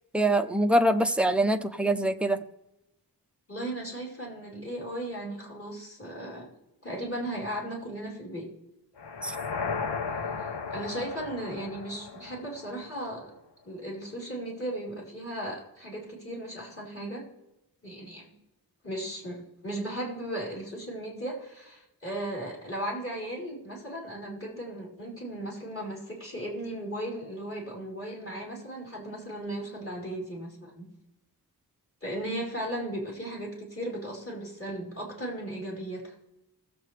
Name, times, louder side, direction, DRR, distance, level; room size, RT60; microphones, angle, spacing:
voice 1, 0.1-2.4 9.2-9.3, right 1 dB, 5° right, 7 dB, 0.6 m, -24 dB
voice 2, 3.5-6.5 6.8-8.5 10.7-13.3 13.6-17.2 17.8-18.3 18.8-30.9 32.0-36.1, right 1 dB, 30° left, -4 dB, 4.4 m, -36 dB
sound 1, 9.0-13.1, left 5 dB, 80° left, 0.9 m, -35 dB
18.0 x 7.7 x 3.3 m, 0.92 s
wide cardioid pair, 85°, 41 cm